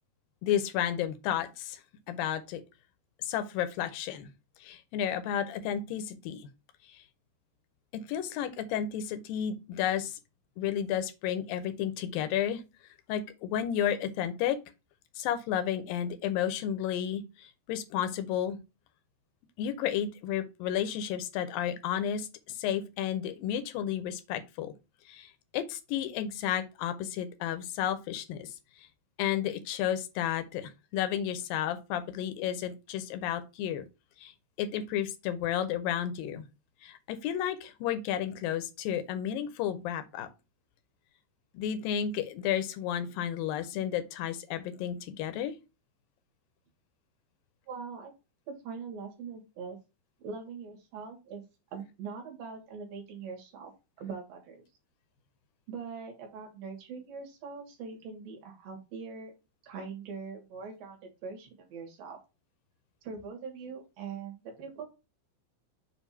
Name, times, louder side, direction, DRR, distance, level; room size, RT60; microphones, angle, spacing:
voice 1, 0.4-1.8 2.1-2.6 3.2-4.3 4.6-6.5 6.8-7.0 7.9-10.2 10.6-12.6 13.1-14.6 15.2-18.6 19.6-24.7 25.1-28.9 29.2-33.9 34.2-34.3 34.6-36.5 36.8-40.3 41.5-45.6, left 10 dB, 75° left, 2.2 m, -32 dB
voice 2, 47.7-48.1 48.5-49.8 50.2-51.4 51.7-53.7 54.0-54.6 55.7-59.3 59.6-62.2 63.0-64.9, right 5 dB, 65° right, 3.0 m, -42 dB
6.9 x 2.6 x 5.5 m
omnidirectional pair, 4.5 m